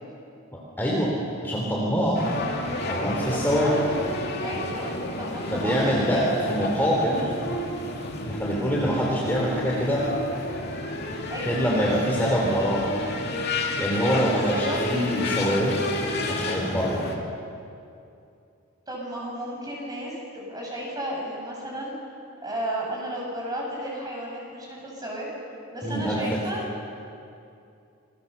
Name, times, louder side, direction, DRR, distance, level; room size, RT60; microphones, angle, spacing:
voice 1, 0.8-1.1 1.4-2.3 2.9-3.7 5.5-6.2 6.5-7.3 8.2-10.0 11.4-12.9 13.8-15.7 16.3-17.0 25.8-26.4, equal, 10° left, -4 dB, 3.2 m, -24 dB
sound 1, 2.1-17.2, left 2 dB, 50° left, 2.9 m, -31 dB
voice 2, 3.3-3.8 4.4-4.9 5.2-6.5 11.3-11.6 14.0-14.2 14.5-14.9 18.9-21.9 22.4-25.3 25.7-26.6, right 1 dB, 20° right, -2 dB, 6.7 m, -33 dB
28.0 x 20.5 x 6.9 m, 2.6 s
head